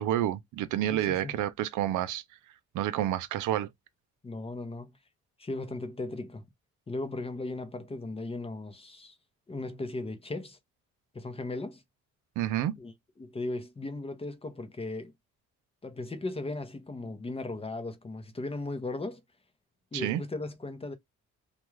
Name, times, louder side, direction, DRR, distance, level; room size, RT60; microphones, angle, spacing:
voice 1, 0.0-2.2 2.7-3.7 12.4-12.7 19.9-20.2, right 12 dB, 80° right, 0.5 m, -29 dB
voice 2, 0.9-1.4 4.2-5.0 5.4-6.4 6.9-9.2 9.5-10.6 11.1-11.8 12.8-12.9 13.2-15.1 15.8-19.2 19.9-20.9, left 2 dB, 20° left, 0.6 m, -37 dB
2.4 x 2.2 x 3.0 m
cardioid pair, 90°, 30 cm